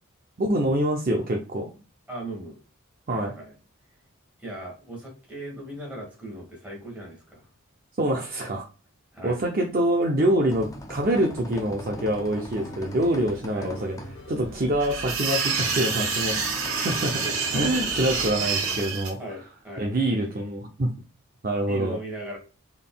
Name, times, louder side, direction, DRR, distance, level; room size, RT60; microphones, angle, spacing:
voice 1, 0.4-1.7 3.1-3.3 8.0-8.6 9.2-14.0 14.3-16.4 16.8-17.2 17.5-19.2 19.8-20.9 21.4-22.0, right 1 dB, 40° right, 1 dB, 0.5 m, -25 dB
voice 2, 2.1-2.6 3.1-3.5 4.4-7.5 9.1-9.4 13.5-13.7 16.3-16.6 17.2-17.3 19.2-19.9 21.7-22.4, right 1 dB, 5° right, -4 dB, 1.7 m, -38 dB
sound 1, 10.3-18.9, equal, 15° left, 0.3 m, -40 dB
sound 2, 12.0-18.3, left 1 dB, 60° left, 0.9 m, -44 dB
sound 3, 14.8-19.1, right 5 dB, 80° right, 1.3 m, -27 dB
3.8 x 3.5 x 2.2 m, 0.35 s
head